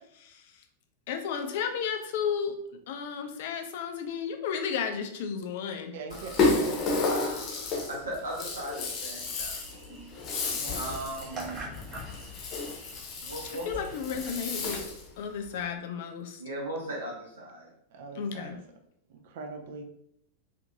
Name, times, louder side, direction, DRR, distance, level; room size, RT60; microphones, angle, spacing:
voice 1, 0.1-0.6 1.1-2.5 2.9-6.0 13.7-14.8 15.2-16.4 18.1-18.6, left 7 dB, 55° left, 5 dB, 0.4 m, -33 dB
voice 2, 5.9-6.9 10.5-10.9 17.9-18.6 19.1-19.8, right 3 dB, 55° right, 4 dB, 0.4 m, -42 dB
Rattle (instrument), 6.1-15.1, left 3 dB, 30° left, 0.8 m, -31 dB
voice 3, 7.2-10.0 10.7-11.7 13.2-13.8 16.4-17.7, right 1 dB, 75° right, -3 dB, 0.9 m, -38 dB
sound 1, 8.7-14.8, right 3 dB, 30° right, 0.8 m, -46 dB
2.6 x 2.5 x 2.5 m, 0.72 s
figure-of-eight pair, 90°, 0 cm